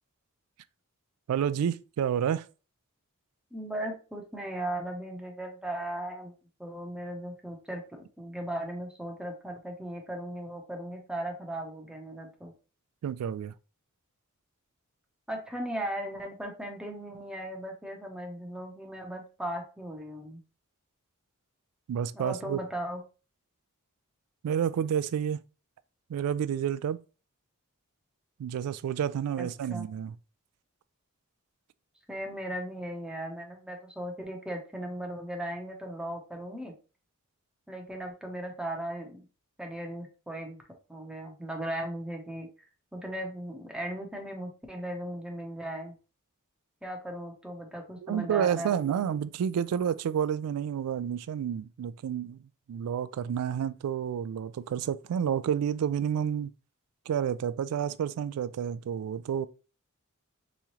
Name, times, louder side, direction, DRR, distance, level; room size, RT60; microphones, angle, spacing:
voice 1, 1.3-2.4 13.0-13.5 21.9-22.6 24.4-25.4 26.1-27.0 28.4-30.1 48.0-52.4 52.7-56.5 57.1-59.5, right 8 dB, 85° right, 0.3 m, -30 dB
voice 2, 3.5-6.3 6.6-12.5 15.3-20.4 22.1-23.0 29.4-29.8 32.1-36.7 37.7-39.3 39.6-40.6 40.9-42.5 42.9-45.9 46.8-49.1, right 1 dB, 5° right, 0.6 m, -37 dB
3.6 x 3.1 x 2.8 m
head